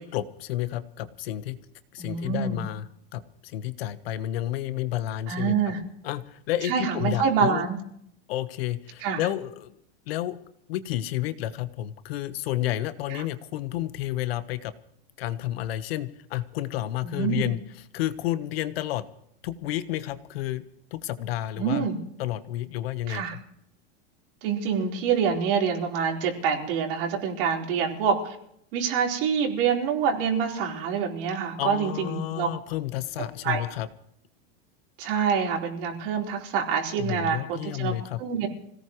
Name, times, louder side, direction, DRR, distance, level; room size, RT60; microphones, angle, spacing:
voice 1, 0.0-1.6 1.9-2.9 3.1-5.5 6.0-7.6 8.3-9.7 10.1-10.4 10.7-14.7 15.2-17.6 17.9-19.0 19.4-20.6 20.9-21.9 22.2-23.2 31.6-33.9 37.0-38.2, left 14 dB, 70° left, 12 dB, 1.3 m, -30 dB
voice 2, 2.0-2.6 5.3-5.8 6.6-7.8 9.0-9.2 13.1-13.2 17.0-17.5 21.6-22.0 23.1-23.4 24.4-28.4 28.7-32.5 33.2-33.6 35.0-37.9 38.2-38.5, right 6 dB, 60° right, 0 dB, 4.3 m, -26 dB
26.0 x 17.5 x 3.1 m, 0.72 s
supercardioid pair, 165°, 31 cm